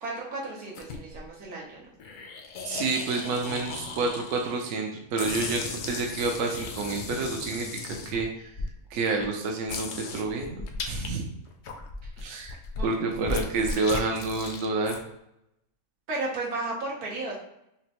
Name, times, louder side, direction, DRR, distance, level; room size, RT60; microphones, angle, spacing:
voice 1, 0.0-1.8 12.8-12.9 16.1-17.4, right 2 dB, 90° right, -3 dB, 1.6 m, -33 dB
sound 1, 0.7-1.3 2.0-4.7 5.2-8.7 9.2-9.3 9.7-11.1 11.5-15.0, left 4 dB, 75° left, 0.4 m, -36 dB
voice 2, 2.6-5.6 5.9-7.7 8.1-8.5 8.9-11.2 12.2-15.0, right 3 dB, 70° right, 1 dB, 1.0 m, -29 dB
5.9 x 2.1 x 2.9 m, 0.83 s
omnidirectional pair, 1.5 m